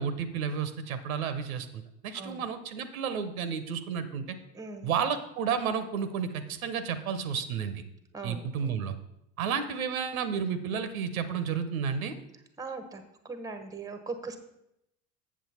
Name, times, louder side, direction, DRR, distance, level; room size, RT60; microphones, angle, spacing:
voice 1, 0.0-4.4 4.8-7.8 8.2-9.0 9.4-12.1, right 7 dB, 70° right, 11 dB, 0.8 m, -32 dB
voice 2, 4.5-5.0 8.1-8.7 12.6-14.4, right 3 dB, 10° right, 9 dB, 0.9 m, -40 dB
7.4 x 7.3 x 4.2 m, 0.82 s
hypercardioid pair, 80°, 43 cm